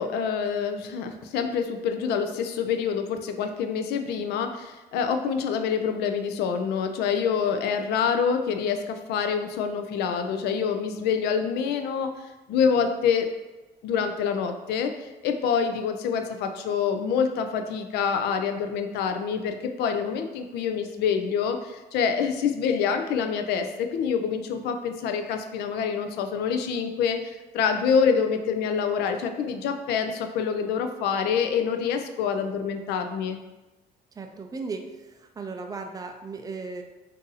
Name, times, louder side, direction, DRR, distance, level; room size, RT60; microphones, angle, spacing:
voice 1, 0.0-12.1 12.5-13.3 13.8-33.4, left 6 dB, 75° left, 6 dB, 0.4 m, -26 dB
voice 2, 34.2-36.8, right 4 dB, 20° right, 4 dB, 0.4 m, -36 dB
2.6 x 2.6 x 3.9 m, 1.1 s
cardioid pair, 110°, 17 cm